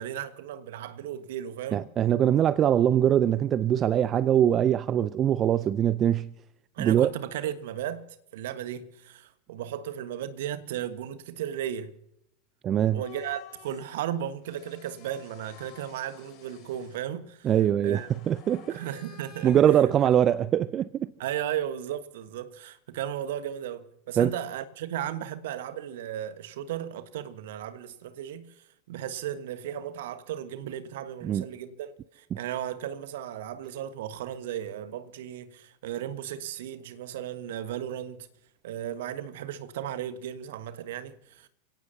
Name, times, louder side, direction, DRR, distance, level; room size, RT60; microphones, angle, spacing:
voice 1, 0.0-1.9 6.7-8.0 8.3-11.9 12.9-17.5 17.8-18.1 18.7-19.6 21.2-38.3 38.6-41.5, right 10 dB, 65° right, 1.4 m, -35 dB
voice 2, 1.7-6.3 6.8-7.1 12.6-13.0 17.4-18.0 18.3-18.8 19.4-21.1 24.2-24.3 31.2-31.5, right 10 dB, 35° right, 0.5 m, -22 dB
sound 1, 12.9-14.0 14.5-17.0 17.9-20.6, left 3 dB, 35° left, 6.7 m, -50 dB
29.0 x 17.5 x 2.8 m
figure-of-eight pair, 85°, 0 cm